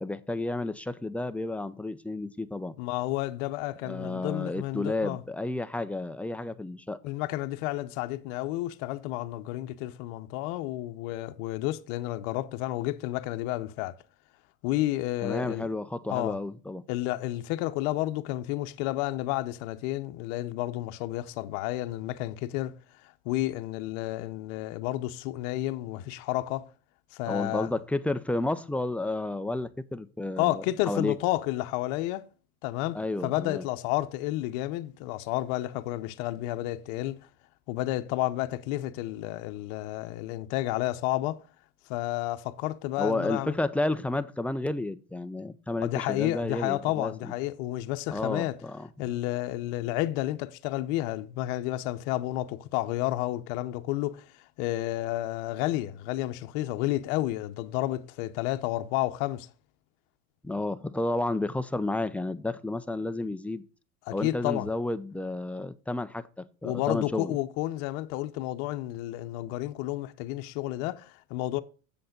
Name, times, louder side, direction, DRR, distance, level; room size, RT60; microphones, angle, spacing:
voice 1, 0.0-2.7 3.8-7.0 15.2-16.8 27.3-31.2 32.9-33.6 43.0-47.3 48.1-48.9 60.4-63.6 64.1-67.4, left 2 dB, 5° left, 0.5 m, -31 dB
voice 2, 2.8-5.2 7.0-14.0 14.6-15.7 16.1-16.4 16.9-26.7 27.1-27.7 30.4-32.3 32.6-37.2 37.7-41.4 41.9-43.5 45.8-48.6 49.0-54.3 54.6-59.5 64.1-64.7 66.6-71.6, left 16 dB, 65° left, 0.9 m, -31 dB
7.7 x 7.0 x 5.1 m
supercardioid pair, 95°, 42 cm